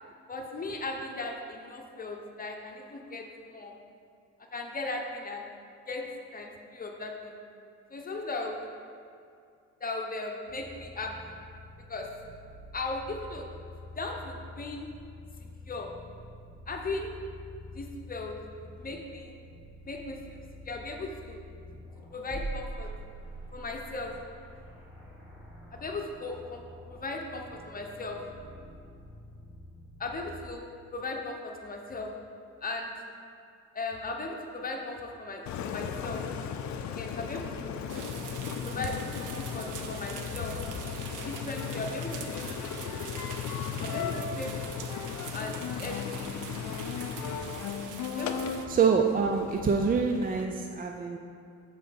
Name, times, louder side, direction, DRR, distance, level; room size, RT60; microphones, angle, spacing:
voice 1, 0.3-3.7 4.5-5.5 5.9-7.4 7.9-8.6 9.8-11.3 11.9-12.1 12.7-13.5 14.0-14.9 15.4-15.9 16.7-17.1 17.7-19.3 19.8-20.4 20.7-21.4 22.1-22.9 23.5-24.1 25.7-26.6 26.9-28.2 30.0-32.1 32.6-32.9 33.7-36.2 36.9-37.7 38.6-39.0 39.3-40.5 40.8-42.8 43.8-44.9 45.3-46.4 48.1-48.4, left 2 dB, 30° left, 2 dB, 0.9 m, -37 dB
sound 1, 10.5-30.4, equal, 5° right, 1.6 m, -46 dB
Engine, 35.5-50.4, left 7 dB, 70° left, 0.6 m, -36 dB
sound 2, 37.9-48.7, right 7 dB, 85° right, 0.7 m, -44 dB
voice 2, 48.7-51.2, right 5 dB, 30° right, 3 dB, 0.4 m, -26 dB
7.2 x 4.0 x 5.9 m, 2.3 s
cardioid pair, 90°, 30 cm